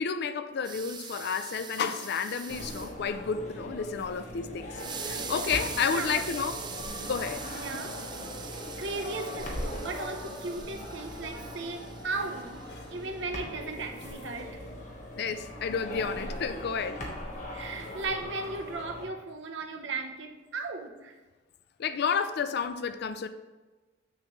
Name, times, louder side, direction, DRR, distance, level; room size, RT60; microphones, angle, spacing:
voice 1, 0.0-4.8 5.0-6.6 7.0-7.6 15.2-17.0 21.8-23.3, left 6 dB, 60° left, 0.4 m, -31 dB
sound 1, 0.6-2.9 4.7-13.1, right 6 dB, 25° right, 0.4 m, -42 dB
sound 2, 2.5-19.0, left 1 dB, 40° left, 1.2 m, -40 dB
voice 2, 5.9-6.2 7.5-8.0 8.8-12.6 12.9-14.6 17.5-21.1, right 3 dB, 70° right, 0.8 m, -36 dB
7.1 x 6.6 x 3.1 m
head